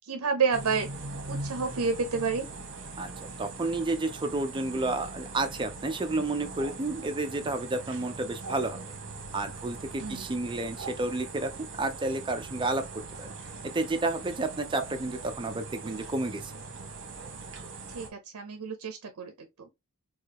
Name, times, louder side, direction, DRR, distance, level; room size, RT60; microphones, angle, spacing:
voice 1, 0.1-0.9 1.3-2.4 10.0-10.3 17.9-19.3, right 5 dB, 75° right, 0.6 m, -29 dB
sound 1, 0.5-18.1, right 3 dB, 55° right, 1.1 m, -41 dB
voice 2, 3.4-8.8 9.3-11.5 11.8-12.8 13.2-13.3 13.7-16.5, right 2 dB, 20° right, 0.4 m, -31 dB
4.7 x 2.3 x 2.8 m
head